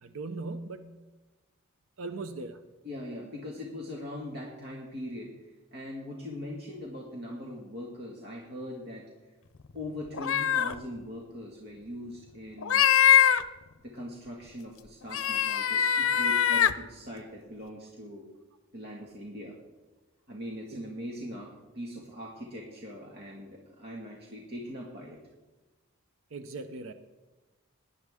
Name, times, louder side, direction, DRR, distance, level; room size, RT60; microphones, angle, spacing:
voice 1, 0.0-1.0 2.0-2.6 20.7-20.8 26.3-26.9, right 3 dB, 80° right, 9 dB, 0.7 m, -39 dB
voice 2, 2.8-5.3 5.7-9.1 9.7-12.9 13.8-18.3 18.7-19.6 20.3-25.2, left 1 dB, 50° right, -2 dB, 1.8 m, -41 dB
sound 1, 10.1-10.7 12.6-13.4 15.1-16.7, left 9 dB, 85° left, 0.6 m, -22 dB
18.0 x 11.0 x 3.6 m, 1.2 s
head